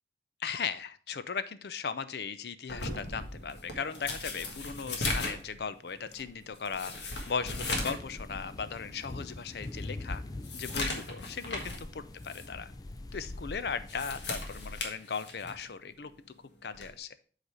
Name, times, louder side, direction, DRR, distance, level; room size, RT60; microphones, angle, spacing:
voice 1, 0.4-10.2 10.5-12.7 13.1-16.1 16.6-17.1, left 6 dB, 70° left, 13 dB, 0.5 m, -37 dB
sound 1, 2.7-8.1 8.4-8.5 9.1-9.2 9.6-11.9 12.2-12.5 13.7-15.7 16.7-17.0, left 2 dB, 85° left, 1.5 m, -37 dB
sound 2, 7.4-14.8, left 2 dB, 20° left, 0.4 m, -43 dB
7.9 x 4.2 x 4.7 m, 0.42 s
head